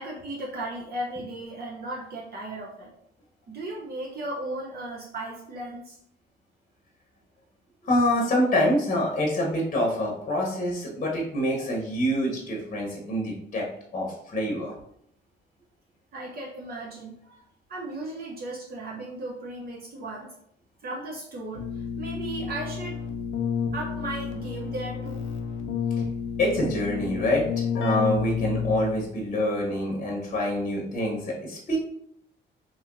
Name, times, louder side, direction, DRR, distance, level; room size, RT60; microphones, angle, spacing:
voice 1, 0.0-2.9 3.5-6.0 16.1-17.2 17.7-20.3 20.8-23.0 23.7-25.3, right 2 dB, 50° right, -3 dB, 0.7 m, -36 dB
voice 2, 7.8-13.7 13.9-14.7 26.4-27.4 27.8-31.8, left 1 dB, 40° left, -1 dB, 0.8 m, -26 dB
Keyboard (musical), 21.5-29.1, left 6 dB, 75° left, 0.6 m, -30 dB
2.8 x 2.8 x 2.5 m, 0.72 s
cardioid pair, 90°, 20 cm